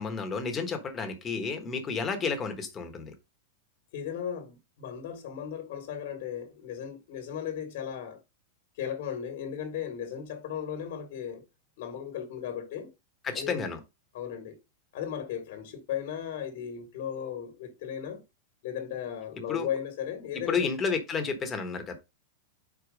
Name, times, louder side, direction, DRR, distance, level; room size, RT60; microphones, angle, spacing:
voice 1, 0.0-3.1 13.2-13.8 19.5-19.7 20.5-22.0, left 5 dB, 20° left, 1.2 m, -31 dB
voice 2, 3.9-8.2 8.8-11.4 11.8-12.9 13.3-13.7 14.1-14.5 14.9-18.2 18.6-20.7, left 9 dB, 60° left, 1.6 m, -36 dB
4.8 x 4.5 x 5.1 m
supercardioid pair, 145°, 0 cm